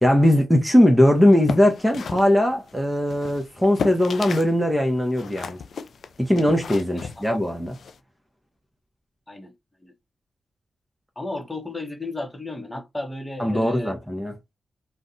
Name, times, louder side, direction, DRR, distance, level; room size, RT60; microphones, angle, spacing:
voice 1, 0.0-5.6 6.2-7.8 13.4-14.3, left 1 dB, 5° right, 0.9 m, -19 dB
sound 1, 1.2-4.6 4.8-8.0, left 6 dB, 70° left, 0.3 m, -34 dB
voice 2, 6.9-7.3 9.3-9.5 9.8-9.9 11.2-13.9, left 2 dB, 20° left, 1.0 m, -34 dB
2.6 x 2.2 x 3.8 m
supercardioid pair, 45°, 0 cm